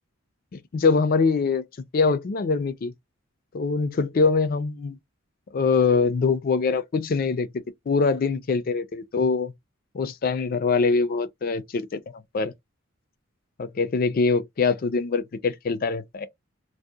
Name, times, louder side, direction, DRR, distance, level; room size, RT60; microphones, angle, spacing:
voice 1, 0.5-1.7 1.9-2.9 3.5-5.0 5.5-7.5 7.9-9.5 9.9-12.0 12.3-12.5 13.6-16.3, left 4 dB, 45° left, 0.4 m, -23 dB
2.7 x 2.0 x 2.2 m
head